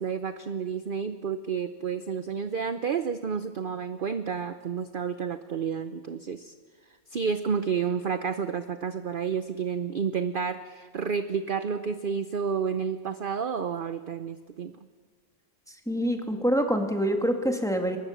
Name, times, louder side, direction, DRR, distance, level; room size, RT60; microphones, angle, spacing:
voice 1, 0.0-6.5 7.1-14.7, right 6 dB, 45° right, 10 dB, 0.8 m, -30 dB
voice 2, 15.9-18.0, equal, ahead, 4 dB, 1.9 m, -26 dB
23.0 x 20.0 x 7.2 m, 1.5 s
omnidirectional pair, 1.6 m